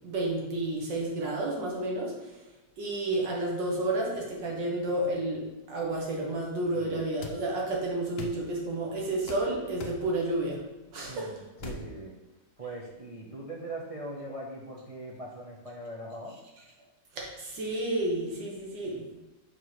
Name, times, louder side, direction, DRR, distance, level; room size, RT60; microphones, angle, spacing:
voice 1, 0.0-2.1 2.8-10.6 10.9-11.3 17.1-19.1, right 2 dB, 85° right, -2 dB, 2.0 m, -31 dB
sound 1, 7.2-7.4 8.2-8.4 9.3-9.4 9.8-10.0 11.6-11.8, left 3 dB, 55° left, 0.6 m, -39 dB
voice 2, 11.1-12.1 12.6-16.3, right 1 dB, 60° right, -3 dB, 0.3 m, -41 dB
5.7 x 3.8 x 4.8 m, 1.1 s
omnidirectional pair, 1.9 m